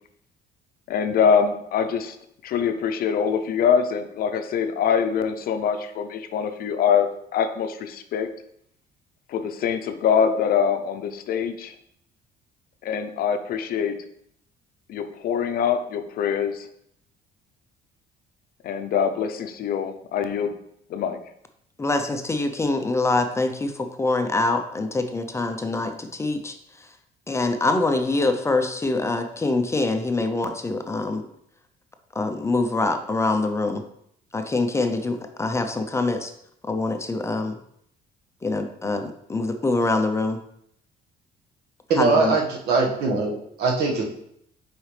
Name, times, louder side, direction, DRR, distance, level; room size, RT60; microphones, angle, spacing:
voice 1, 0.9-2.2 2.4-8.3 9.3-11.7 12.8-14.1 14.9-16.7 18.6-20.6 20.9-21.2, left 7 dB, 60° left, 9 dB, 0.6 m, -24 dB
voice 2, 21.8-26.5 27.3-31.2 32.2-33.8 34.3-36.3 36.7-37.6 38.4-40.4 42.0-42.4, left 2 dB, 15° left, 6 dB, 0.6 m, -24 dB
voice 3, 41.9-44.1, right 4 dB, 70° right, 0 dB, 1.5 m, -22 dB
6.1 x 5.0 x 3.3 m, 0.72 s
cardioid pair, 110°, 17 cm